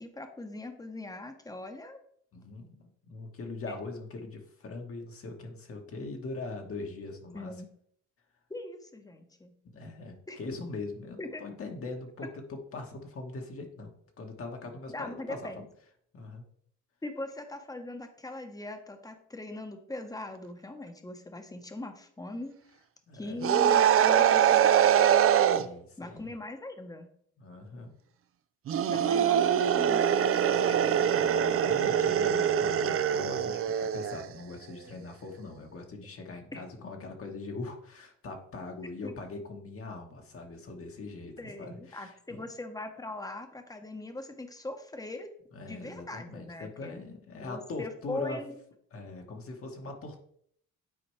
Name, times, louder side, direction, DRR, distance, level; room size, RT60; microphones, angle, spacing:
voice 1, 0.0-2.0 7.3-7.7 8.5-9.5 10.3-10.4 11.2-11.4 14.9-15.7 17.0-22.5 23.1-24.9 26.0-27.1 28.9-30.9 36.5-36.6 39.0-39.1 41.4-45.3 45.6-47.0 47.4-48.6, left 2 dB, 10° left, 6 dB, 1.0 m, -41 dB
voice 2, 2.3-7.5 9.6-15.5 16.1-16.4 23.1-23.5 25.5-26.3 27.4-27.9 28.9-29.0 31.1-42.4 45.5-48.4 48.9-50.2, left 3 dB, 45° left, 2 dB, 1.3 m, -41 dB
sound 1, 23.4-25.6 28.7-34.2, right 9 dB, 50° right, 0.5 m, -23 dB
9.6 x 4.2 x 3.2 m, 0.65 s
cardioid pair, 90°, 30 cm